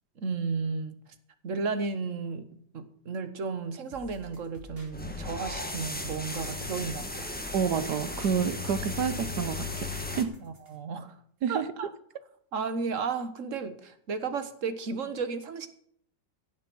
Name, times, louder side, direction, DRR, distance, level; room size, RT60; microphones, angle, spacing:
voice 1, 0.2-1.0 1.4-2.5 2.7-7.3 10.4-11.2 11.5-11.9 12.5-15.7, right 5 dB, 45° right, 1.5 m, -33 dB
sound 1, 3.9-10.8, left 2 dB, 30° right, 3.4 m, -48 dB
sound 2, 4.9-10.2, left 2 dB, 5° left, 1.3 m, -36 dB
voice 2, 7.5-10.3 11.4-11.6, right 7 dB, 65° right, 1.4 m, -29 dB
17.0 x 7.2 x 6.2 m
omnidirectional pair, 1.9 m